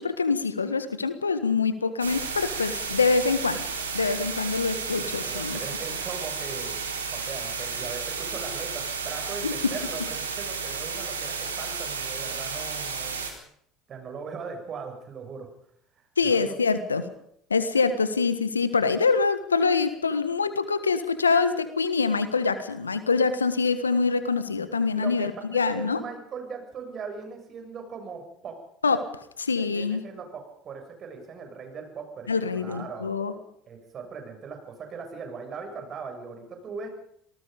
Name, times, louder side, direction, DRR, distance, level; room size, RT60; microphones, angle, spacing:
voice 1, 0.0-3.6 3.9-5.6 9.4-9.7 16.2-17.0 17.5-26.0 28.8-29.0 29.4-30.0 32.3-33.3, left 4 dB, 90° left, 12 dB, 1.5 m, -25 dB
sound 1, 2.0-13.3, right 5 dB, 85° right, 3.9 m, -32 dB
voice 2, 4.9-6.8 7.1-13.2 13.9-15.5 16.0-16.5 24.9-25.3 25.5-28.6 29.6-33.1 33.7-36.9, right 5 dB, 40° right, 5 dB, 7.2 m, -39 dB
27.0 x 19.0 x 5.3 m, 0.67 s
hypercardioid pair, 65°, 0 cm